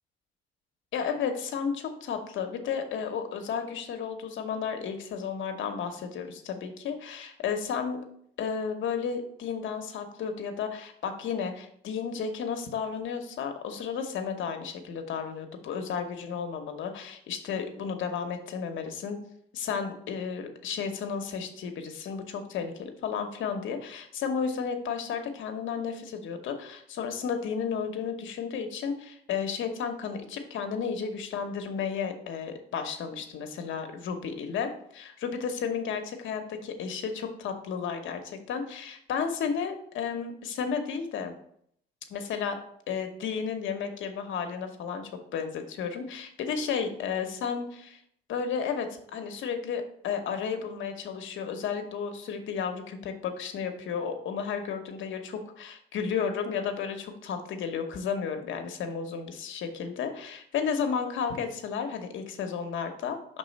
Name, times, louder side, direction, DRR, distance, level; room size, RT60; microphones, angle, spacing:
voice 1, 0.9-8.0 8.4-19.2 19.5-41.3 42.1-42.6 42.9-48.0 48.3-63.4, left 6 dB, 75° left, 6 dB, 1.0 m, -33 dB
5.4 x 3.7 x 5.2 m, 0.68 s
cardioid pair, 90°, 20 cm